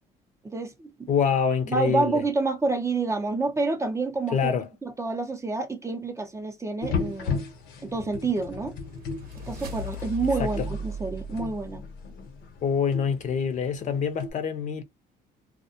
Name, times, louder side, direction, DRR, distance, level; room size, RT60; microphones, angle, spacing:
voice 1, 0.4-1.1 1.7-4.5 4.8-7.4 7.8-8.8 9.5-11.8, right 3 dB, 15° right, 0.5 m, -28 dB
voice 2, 1.1-2.2 4.3-4.7 10.4-10.7 12.6-14.8, left 6 dB, 45° left, 0.6 m, -26 dB
sound 1, 6.8-14.3, left 5 dB, 75° left, 0.8 m, -36 dB
sound 2, 8.4-12.4, equal, 60° right, 0.8 m, -37 dB
2.2 x 2.1 x 2.7 m
cardioid pair, 110°, 17 cm